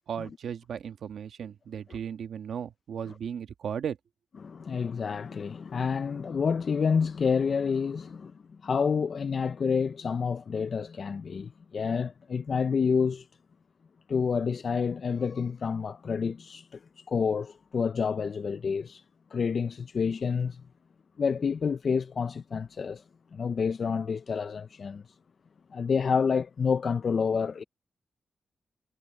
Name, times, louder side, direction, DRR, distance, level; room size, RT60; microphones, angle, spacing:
voice 1, 0.1-4.0, right 8 dB, 80° right, 1.6 m, -36 dB
voice 2, 4.4-8.3 8.6-13.3 14.1-16.8 17.1-19.0 19.3-20.6 21.2-23.0 23.3-25.0 25.7-27.6, left 6 dB, 55° left, 0.5 m, -28 dB
cardioid pair, 95°, 0 cm